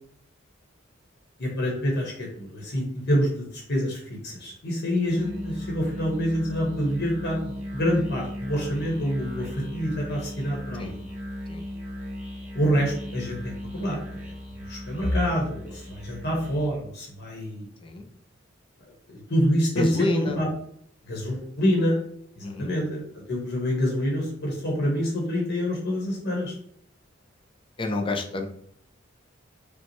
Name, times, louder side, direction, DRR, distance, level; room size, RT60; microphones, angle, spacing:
voice 1, 1.4-11.0 12.5-14.3 14.7-17.7 19.1-19.9 20.1-20.5 21.1-22.0 22.4-23.0 23.3-26.5, equal, 60° left, -3 dB, 1.1 m, -27 dB
Musical instrument, 5.1-16.8, left 1 dB, 5° right, 1.1 m, -37 dB
voice 2, 19.8-20.4 22.4-22.7 27.8-28.6, left 2 dB, 25° left, 4 dB, 0.5 m, -29 dB
5.0 x 2.3 x 3.2 m, 0.63 s
head